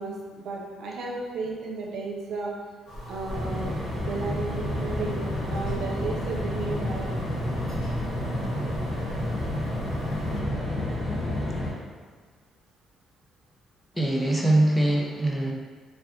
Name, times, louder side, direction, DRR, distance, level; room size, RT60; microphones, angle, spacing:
voice 1, 0.0-2.5 3.1-7.3, right 3 dB, 75° right, -1 dB, 0.5 m, -34 dB
sound 1, 2.9-10.4, right 1 dB, 70° left, 0.8 m, -36 dB
sound 2, 3.3-11.7, left 1 dB, 30° left, 1.1 m, -30 dB
voice 2, 13.9-15.5, right 1 dB, 5° left, -1 dB, 0.4 m, -23 dB
2.4 x 2.2 x 3.6 m, 1.5 s
cardioid pair, 90°, 0 cm